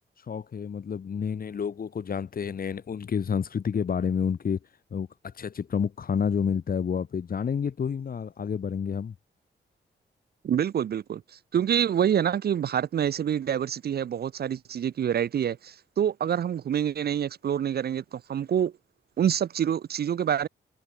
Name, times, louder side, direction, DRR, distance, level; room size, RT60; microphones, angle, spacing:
voice 1, 0.3-4.6 4.9-9.1, left 7 dB, 45° left, 0.8 m, -29 dB
voice 2, 10.4-18.7 19.2-20.5, right 9 dB, 55° right, 0.4 m, -27 dB
cardioid pair, 75°, 20 cm